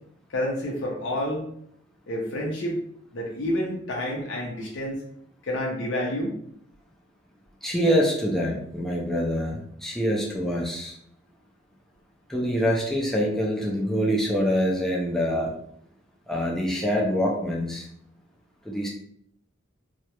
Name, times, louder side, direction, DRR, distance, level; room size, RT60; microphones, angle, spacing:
voice 1, 0.3-1.4 2.1-2.8 3.1-5.0 5.4-6.4, left 1 dB, 70° left, -2 dB, 0.5 m, -29 dB
voice 2, 7.6-10.9 12.3-15.5 16.3-17.9 18.6-18.9, equal, ahead, -3 dB, 0.3 m, -25 dB
2.3 x 2.0 x 2.8 m, 0.69 s
head